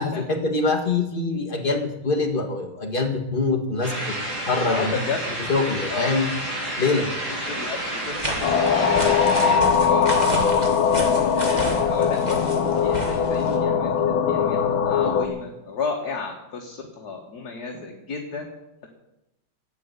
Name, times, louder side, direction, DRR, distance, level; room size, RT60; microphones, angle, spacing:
voice 1, 0.0-5.0 5.5-6.3 6.8-7.1, left 3 dB, 30° left, 3 dB, 1.8 m, -24 dB
sound 1, 3.8-9.6, right 1 dB, 50° right, 5.4 m, -30 dB
voice 2, 4.6-5.5 5.9-6.2 7.3-7.8 8.1-10.4 10.9-14.6 14.8-18.5 18.8-18.9, left 5 dB, 55° left, 1 dB, 2.0 m, -33 dB
sound 2, 8.1-13.6, right 2 dB, 20° right, 2.1 m, -32 dB
sound 3, 8.4-15.3, left 6 dB, 80° left, 1.9 m, -21 dB
13.5 x 8.9 x 8.2 m, 0.92 s
omnidirectional pair, 2.1 m